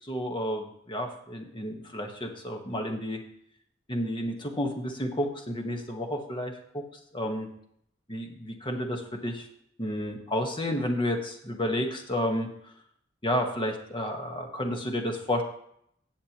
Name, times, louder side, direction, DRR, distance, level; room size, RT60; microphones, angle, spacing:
voice 1, 0.0-3.2 3.9-6.5 7.1-7.5 8.1-9.5 9.8-12.7 13.2-15.4, left 1 dB, 25° left, 3 dB, 1.3 m, -31 dB
16.5 x 6.6 x 3.0 m, 0.69 s
head